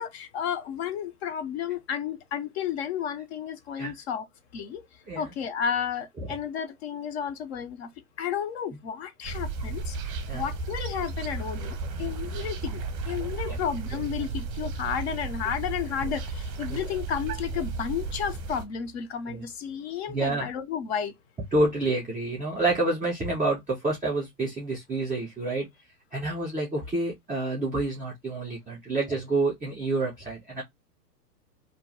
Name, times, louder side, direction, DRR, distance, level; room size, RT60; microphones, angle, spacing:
voice 1, 0.0-4.3 4.5-4.8 5.2-7.9 8.2-21.1, left 8 dB, 40° left, 0.6 m, -32 dB
sound 1, 9.2-18.7, right 3 dB, 30° right, 0.7 m, -34 dB
voice 2, 20.1-20.5 21.5-25.7 26.1-30.6, right 2 dB, 5° right, 0.3 m, -28 dB
2.7 x 2.1 x 3.1 m
hypercardioid pair, 125°, 49 cm